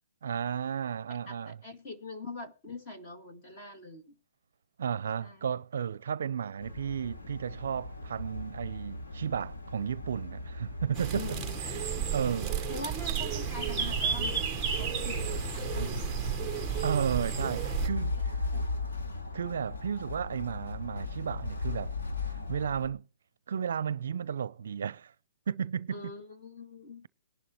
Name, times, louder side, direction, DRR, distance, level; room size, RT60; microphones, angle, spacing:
voice 1, 0.2-1.6 4.8-11.3 11.7-12.6 16.8-18.4 19.3-21.9 22.3-23.1 23.5-25.1 25.5-26.0, right 7 dB, 60° right, 0.6 m, -33 dB
voice 2, 1.3-4.2 5.2-5.5 11.1-12.2 12.7-16.0 18.5-18.7 25.9-27.1, left 2 dB, 20° left, 2.1 m, -43 dB
sound 1, 6.6-22.9, left 3 dB, 85° left, 2.6 m, -38 dB
sound 2, 10.9-17.9, right 8 dB, 5° right, 1.1 m, -32 dB
20.5 x 11.5 x 3.1 m
hypercardioid pair, 170°, 0 cm